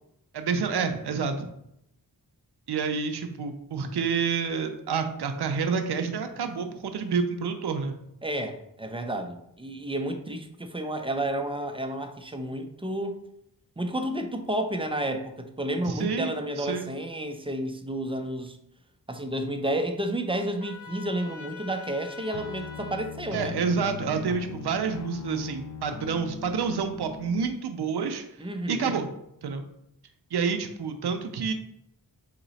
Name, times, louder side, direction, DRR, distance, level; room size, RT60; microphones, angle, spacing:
voice 1, 0.3-1.5 2.7-8.0 15.8-16.9 23.3-28.2 28.7-29.1 29.4-29.6 30.3-31.5, right 5 dB, 75° right, 6 dB, 0.6 m, -28 dB
voice 2, 8.2-13.2 13.8-18.6 19.1-23.5 28.4-28.9, right 1 dB, 15° right, 5 dB, 0.5 m, -31 dB
Trumpet, 20.6-23.1, left 3 dB, 60° left, 1.3 m, -44 dB
sound 1, 22.3-27.5, left 7 dB, 45° left, 0.4 m, -39 dB
4.0 x 2.9 x 4.0 m, 0.78 s
wide cardioid pair, 50°, 40 cm